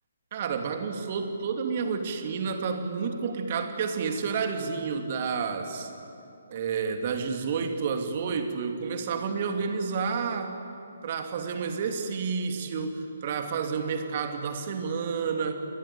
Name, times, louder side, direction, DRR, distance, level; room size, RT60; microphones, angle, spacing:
voice 1, 0.3-5.9 6.5-10.6 11.0-15.6, right 5 dB, 40° right, 5 dB, 2.9 m, -30 dB
29.0 x 21.0 x 8.7 m, 2.7 s
figure-of-eight pair, 135°, 0 cm